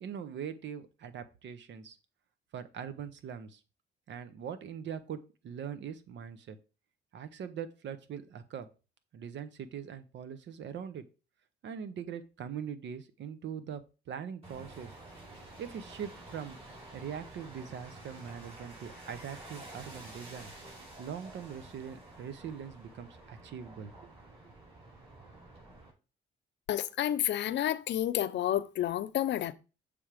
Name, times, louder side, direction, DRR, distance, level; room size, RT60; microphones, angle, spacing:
voice 1, 0.0-2.0 2.5-3.6 4.1-6.6 7.1-8.7 9.1-11.0 11.6-13.8 14.1-15.0 15.6-16.6 16.9-20.5 21.0-24.1 24.4-24.5, right 8 dB, 65° right, 0.8 m, -42 dB
sound 1, 14.4-25.9, right 2 dB, 30° right, 4.4 m, -50 dB
voice 2, 26.7-29.5, left 12 dB, 65° left, 0.5 m, -30 dB
7.1 x 3.4 x 4.9 m
cardioid pair, 90°, 20 cm